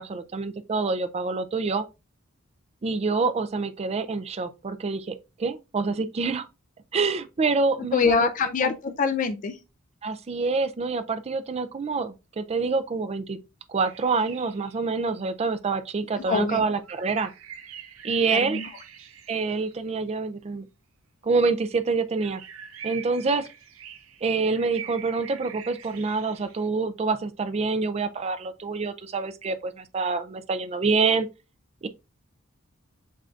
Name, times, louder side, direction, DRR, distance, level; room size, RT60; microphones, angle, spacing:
voice 1, 0.0-1.8 2.8-6.5 6.9-8.2 10.0-13.4 13.7-17.3 18.0-18.6 19.3-20.7 21.2-22.4 22.8-23.5 24.2-31.3 31.8-31.9, right 4 dB, 30° right, 0.4 m, -26 dB
voice 2, 7.9-9.6 16.3-16.6 18.3-18.7 23.3-23.4, left 5 dB, 40° left, 0.4 m, -25 dB
sound 1, 13.8-15.1 16.8-19.9 22.2-26.7, right 8 dB, 80° right, 0.6 m, -44 dB
7.4 x 2.6 x 2.4 m
head